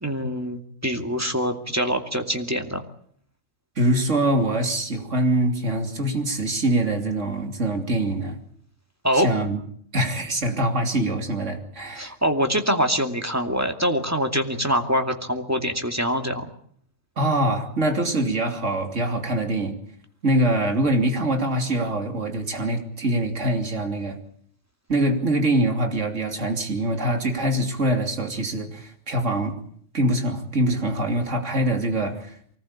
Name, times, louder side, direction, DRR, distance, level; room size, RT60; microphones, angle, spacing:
voice 1, 0.0-2.8 9.0-9.3 12.0-16.4, equal, 10° right, 5 dB, 2.4 m, -24 dB
voice 2, 3.7-8.4 9.1-9.6 9.9-12.1 17.2-19.7 20.2-24.2 24.9-29.6 29.9-32.6, right 1 dB, 70° right, 4 dB, 3.3 m, -24 dB
24.5 x 18.5 x 8.7 m, 0.63 s
omnidirectional pair, 1.3 m